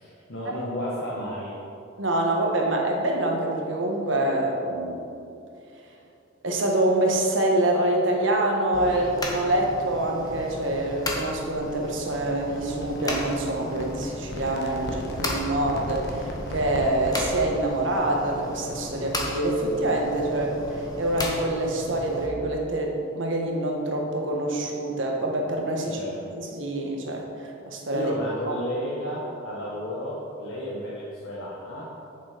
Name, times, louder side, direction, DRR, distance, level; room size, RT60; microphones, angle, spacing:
voice 1, 0.0-1.6 8.9-9.1 25.8-26.3 27.9-32.1, equal, 70° left, -7 dB, 1.5 m, -33 dB
voice 2, 2.0-5.1 6.4-26.0 26.4-28.1 28.5-28.6, right 1 dB, 65° right, 0 dB, 1.4 m, -26 dB
sound 1, 8.7-22.3, left 1 dB, 20° left, 1.0 m, -35 dB
sound 2, 12.5-17.6, left 1 dB, 55° left, 1.1 m, -37 dB
8.6 x 7.2 x 5.1 m, 2.6 s
head